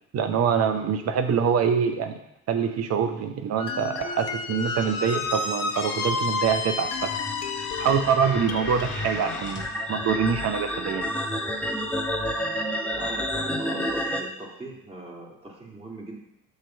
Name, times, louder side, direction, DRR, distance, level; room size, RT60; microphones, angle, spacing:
voice 1, 0.1-2.2 2.5-7.1 7.8-9.6 9.9-11.1, right 7 dB, 35° right, 7 dB, 0.7 m, -25 dB
Squeak, 3.6-9.7, left 3 dB, 75° left, 0.8 m, -31 dB
sound 1, 3.7-8.9, left 6 dB, 35° left, 0.7 m, -40 dB
sound 2, 4.9-14.2, equal, 5° left, 0.8 m, -31 dB
voice 2, 12.9-16.2, right 2 dB, 15° right, -3 dB, 1.8 m, -41 dB
6.8 x 3.0 x 5.4 m, 0.82 s
figure-of-eight pair, 55°, 43 cm